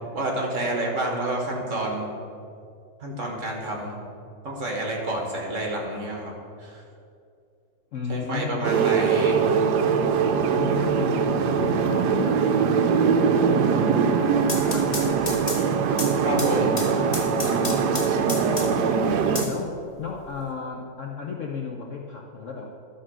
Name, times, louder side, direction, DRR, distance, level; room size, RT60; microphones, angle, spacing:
voice 1, 0.1-2.1 3.0-3.9 4.4-6.3 6.6-6.8 8.1-9.4 16.2-16.7, right 1 dB, 45° right, 0 dB, 1.6 m, -29 dB
voice 2, 7.9-8.9 10.5-15.5 17.5-22.7, left 5 dB, 60° left, 0 dB, 0.8 m, -35 dB
sound 1, 8.6-19.5, right 6 dB, 70° right, 1.2 m, -22 dB
sound 2, 14.3-18.9 19.3-20.3, left 3 dB, 35° left, 0.7 m, -33 dB
12.5 x 4.4 x 6.2 m, 2.4 s
omnidirectional pair, 2.0 m